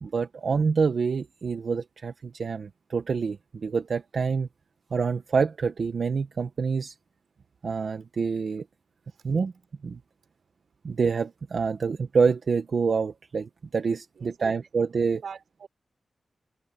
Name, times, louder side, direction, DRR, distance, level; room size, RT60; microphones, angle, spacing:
voice 1, 0.0-4.5 4.9-6.9 7.6-8.6 9.2-9.5 9.8-10.0 10.8-15.2, right 5 dB, 55° right, 1.0 m, -27 dB
voice 2, 14.1-14.5 15.2-15.7, right 6 dB, 80° right, 5.3 m, -43 dB
wide cardioid pair, 180°, 0 cm